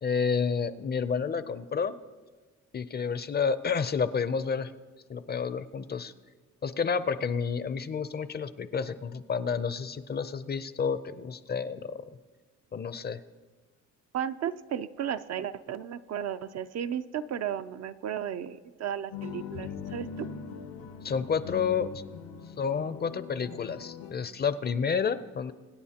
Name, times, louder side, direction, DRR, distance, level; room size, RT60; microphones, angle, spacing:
voice 1, 0.0-1.9 2.7-4.7 5.1-6.1 6.6-12.0 12.7-13.2 21.0-22.0 22.6-25.5, left 6 dB, 35° left, 13 dB, 0.5 m, -30 dB
voice 2, 14.1-20.3, right 9 dB, 60° right, 11 dB, 0.5 m, -34 dB
sound 1, 19.1-24.1, left 6 dB, 90° left, 1.1 m, -41 dB
24.5 x 9.3 x 2.9 m, 1.4 s
cardioid pair, 90°, 30 cm